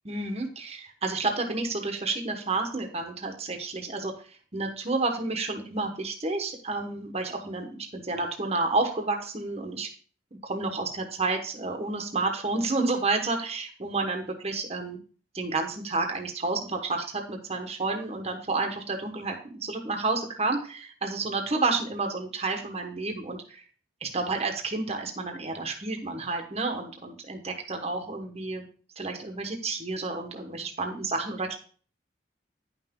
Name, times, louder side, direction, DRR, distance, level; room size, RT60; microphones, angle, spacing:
voice 1, 0.0-9.9 10.3-15.0 15.3-23.6 24.0-28.6 29.0-31.6, right 3 dB, 35° right, 3 dB, 1.2 m, -30 dB
9.9 x 5.9 x 3.6 m, 0.42 s
head